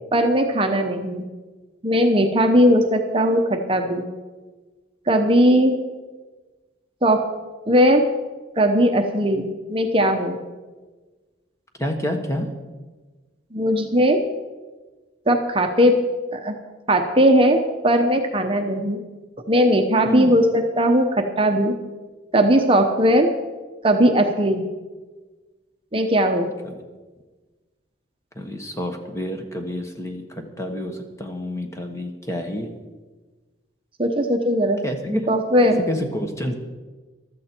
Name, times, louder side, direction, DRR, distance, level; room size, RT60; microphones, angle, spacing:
voice 1, 0.1-1.2 1.8-4.0 5.1-5.7 7.0-7.2 7.7-8.0 8.6-10.4 13.5-14.2 15.3-16.0 16.3-16.6 16.9-19.0 19.5-21.7 22.3-23.3 23.8-24.7 25.9-26.5 34.0-34.8 35.3-35.8, equal, 30° right, 4 dB, 0.9 m, -18 dB
voice 2, 11.8-12.5 20.1-20.4 26.6-26.8 28.4-30.2 30.6-32.7 34.8-35.2 35.6-36.6, equal, 15° left, 4 dB, 1.2 m, -28 dB
15.0 x 12.5 x 4.5 m, 1.3 s
head